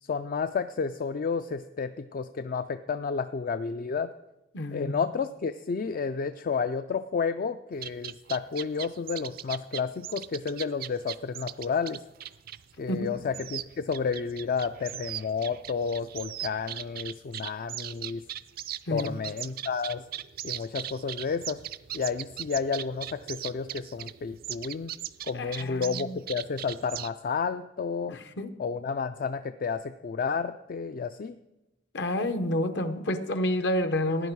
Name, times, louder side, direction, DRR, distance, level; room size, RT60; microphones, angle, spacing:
voice 1, 0.0-4.1 4.7-12.0 12.8-18.2 18.9-20.1 20.4-21.6 21.9-24.9 25.2-28.2 28.6-31.4, left 5 dB, 50° left, 10 dB, 0.4 m, -31 dB
voice 2, 4.5-4.9 12.9-13.1 18.9-19.1 25.3-26.2 28.1-28.5 31.9-34.3, left 1 dB, 65° left, 10 dB, 1.0 m, -29 dB
sound 1, 7.7-27.1, right 11 dB, 55° right, 0.4 m, -39 dB
16.0 x 10.0 x 4.7 m, 0.96 s
head